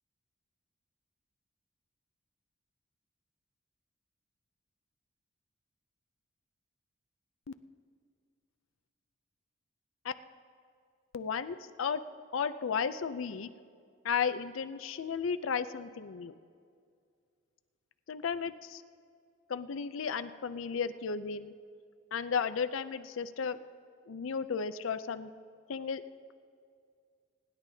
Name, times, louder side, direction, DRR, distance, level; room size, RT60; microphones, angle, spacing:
voice 1, 11.1-12.0 12.3-13.5 14.0-16.3 18.1-18.8 19.5-21.5 22.1-23.6 24.1-25.3 25.7-26.0, left 6 dB, 80° left, 11 dB, 0.5 m, -34 dB
25.5 x 10.5 x 2.8 m, 2.2 s
head